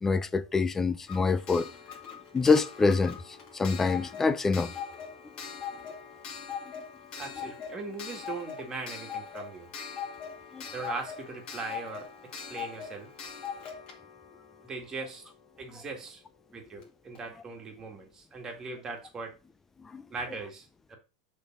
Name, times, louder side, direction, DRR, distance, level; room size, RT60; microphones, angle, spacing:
voice 1, 0.0-1.7 2.3-3.2 3.5-4.7 10.5-10.7 19.9-20.0, left 4 dB, 10° left, 0.4 m, -25 dB
Clock, 1.1-15.7 16.8-16.9 17.1-17.2, left 7 dB, 30° left, 2.0 m, -42 dB
voice 2, 7.2-9.7 10.7-12.1 12.5-13.1 14.6-15.3 15.6-16.2 16.5-19.3 20.1-21.0, right 3 dB, 20° right, 2.0 m, -39 dB
6.6 x 4.0 x 6.0 m
supercardioid pair, 150°, 3 cm